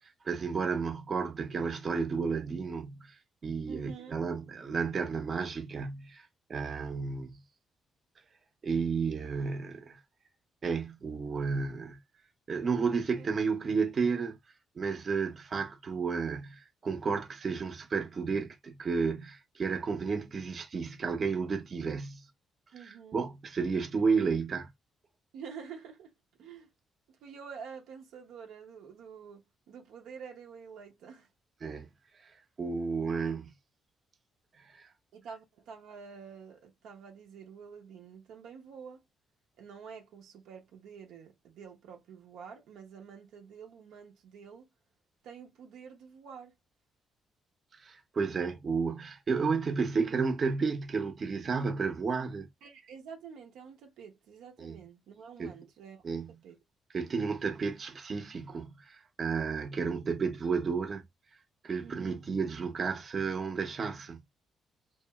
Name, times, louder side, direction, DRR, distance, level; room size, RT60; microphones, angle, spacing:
voice 1, 0.2-3.1 3.4-7.4 8.6-10.0 10.6-12.0 12.5-14.4 14.8-22.2 23.1-24.7 31.6-31.9 32.6-33.5 34.6-34.9 47.8-52.5 54.6-54.8 55.4-55.5 56.0-56.3 56.9-61.0 61.6-64.2, right 5 dB, 45° right, 0.7 m, -32 dB
voice 2, 3.7-4.4 13.2-13.3 22.7-23.3 25.3-26.1 26.4-26.7 27.1-31.3 33.3-33.4 35.1-39.0 39.6-44.7 45.2-46.5 52.6-56.6 61.8-62.2, right 6 dB, 85° right, 0.7 m, -48 dB
3.0 x 2.4 x 2.3 m
cardioid pair, 90°, 0 cm